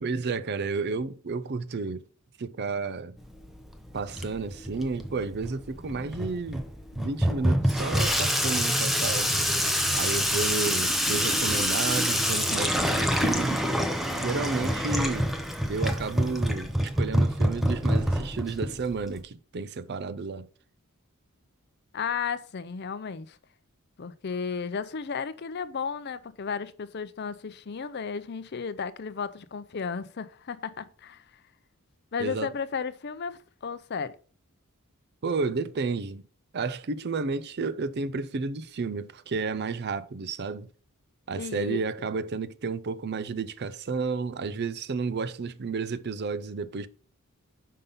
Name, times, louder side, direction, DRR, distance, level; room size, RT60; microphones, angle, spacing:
voice 1, 0.0-2.1 2.4-3.2 3.9-6.6 6.9-9.3 9.9-13.7 14.2-15.3 15.7-20.5 32.2-32.5 35.2-36.2 36.5-40.7 41.3-46.9, right 4 dB, 50° right, 0.5 m, -31 dB
Water tap faucet / Sink (filling or washing), 3.2-19.2, equal, ahead, 0.7 m, -27 dB
voice 2, 21.9-23.4 24.0-31.2 32.1-34.2 41.4-41.8, left 6 dB, 50° left, 0.5 m, -34 dB
5.5 x 5.3 x 5.5 m
head